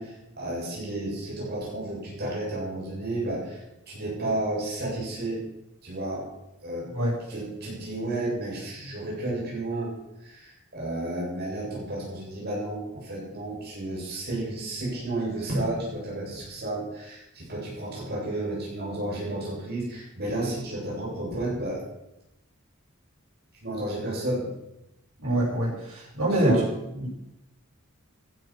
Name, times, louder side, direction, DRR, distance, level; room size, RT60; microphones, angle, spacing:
voice 1, 0.0-5.5 5.8-6.3 6.6-6.9 7.3-21.8 23.6-24.5 26.3-26.7, right 1 dB, 50° right, -4 dB, 7.7 m, -32 dB
voice 2, 25.2-26.5 26.9-27.1, right 1 dB, 80° right, -6 dB, 7.2 m, -25 dB
16.0 x 12.5 x 6.1 m, 0.90 s
head